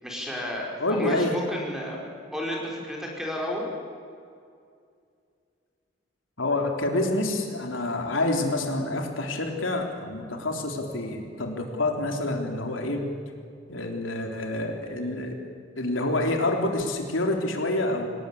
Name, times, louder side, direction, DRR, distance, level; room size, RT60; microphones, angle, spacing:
voice 1, 0.0-2.0 2.3-3.7, left 1 dB, 5° right, -2 dB, 5.1 m, -32 dB
voice 2, 0.8-1.4 6.4-13.0 13.7-15.4 15.8-18.1, left 2 dB, 85° left, 2 dB, 3.4 m, -27 dB
25.5 x 18.5 x 8.6 m, 2.3 s
head